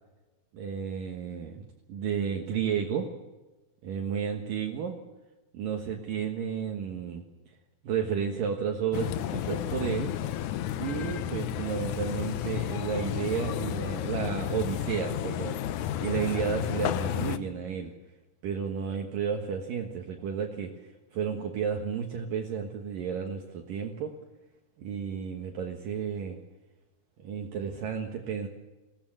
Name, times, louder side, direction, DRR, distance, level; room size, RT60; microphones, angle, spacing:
voice 1, 0.5-3.1 3.8-5.0 5.5-7.2 7.8-10.1 10.7-17.9 18.4-20.7 21.1-24.1 24.8-26.4 27.2-28.5, right 7 dB, 65° right, 3 dB, 2.9 m, -32 dB
sound 1, 8.9-17.4, left 11 dB, 80° left, 1.7 m, -32 dB
21.0 x 17.0 x 9.0 m, 1.1 s
omnidirectional pair, 4.6 m